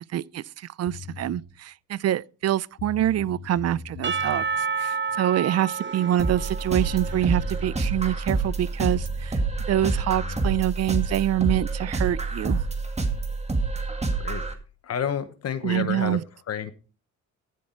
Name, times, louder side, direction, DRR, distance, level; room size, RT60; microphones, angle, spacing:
voice 1, 0.1-0.4 0.8-9.4 9.7-12.6 15.6-16.2, right 12 dB, 55° right, 0.5 m, -25 dB
sound 1, 0.9-1.4 2.4-2.5 2.8-4.5 6.6-6.7 7.0-8.2 8.9-10.6, left 5 dB, 75° left, 2.6 m, -40 dB
Percussion / Church bell, 4.0-8.2, right 5 dB, 40° right, 1.1 m, -30 dB
sound 2, 6.2-14.5, right 3 dB, 20° right, 2.1 m, -27 dB
voice 2, 14.8-16.2 16.5-16.7, left 8 dB, 55° left, 1.1 m, -29 dB
14.5 x 6.5 x 4.5 m
cardioid pair, 90°, 30 cm